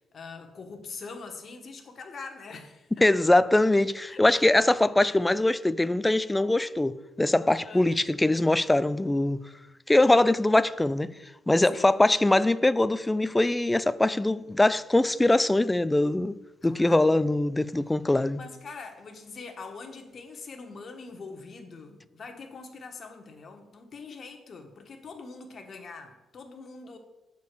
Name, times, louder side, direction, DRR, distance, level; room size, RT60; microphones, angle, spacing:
voice 1, 0.1-3.1 4.1-4.4 7.6-7.9 11.7-11.9 16.6-17.3 18.4-27.0, left 4 dB, 45° left, 1.3 m, -43 dB
voice 2, 3.0-9.4 9.9-11.1 11.5-16.4 16.6-18.4, left 2 dB, 10° left, 0.3 m, -22 dB
6.8 x 4.7 x 6.7 m
cardioid pair, 90°, 0 cm